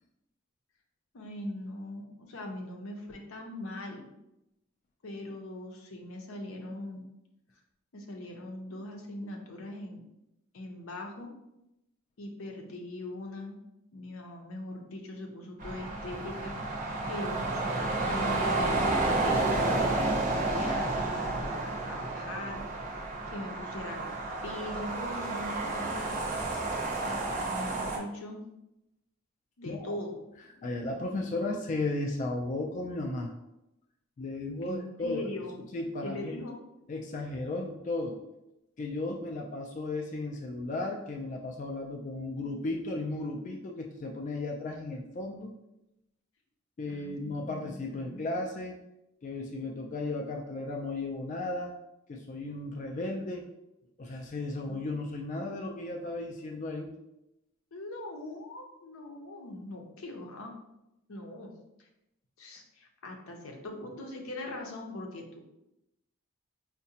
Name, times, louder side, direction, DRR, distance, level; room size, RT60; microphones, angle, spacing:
voice 1, 1.1-4.1 5.0-7.0 7.9-10.1 10.5-11.3 12.2-13.6 13.9-22.6 23.3-24.2 24.4-26.3 27.0-28.4 29.6-30.3 34.6-35.6 36.0-36.6 46.9-48.2 57.7-60.6 61.1-61.5 61.8-61.9 62.4-65.4, left 1 dB, 85° left, 2 dB, 0.6 m, -41 dB
sound 1, 15.6-28.0, right 2 dB, 40° right, 0.6 m, -31 dB
voice 2, 29.6-30.0 30.6-33.3 34.2-35.2 35.7-36.4 36.9-38.2 38.8-45.5 46.8-48.8 49.2-51.8 52.1-53.5 54.0-56.9, left 2 dB, 35° left, 2 dB, 0.3 m, -35 dB
4.7 x 2.2 x 2.7 m, 0.88 s
head